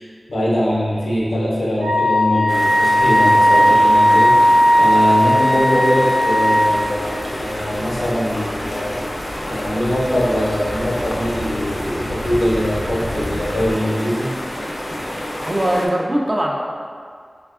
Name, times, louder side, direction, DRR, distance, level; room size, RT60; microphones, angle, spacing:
voice 1, 0.0-9.0 9.5-14.3, equal, 90° left, -6 dB, 0.6 m, -22 dB
Wind instrument woodwind instrument, 1.8-6.7, equal, 90° right, 0.7 m, -15 dB
sound 1, 2.5-15.9, left 1 dB, 35° left, 0.4 m, -29 dB
sound 2, 6.7-13.8, equal, 60° right, 0.8 m, -34 dB
voice 2, 15.5-16.8, right 1 dB, 35° right, -1 dB, 0.4 m, -20 dB
3.3 x 2.2 x 2.4 m, 2.1 s
wide cardioid pair, 50°, 0 cm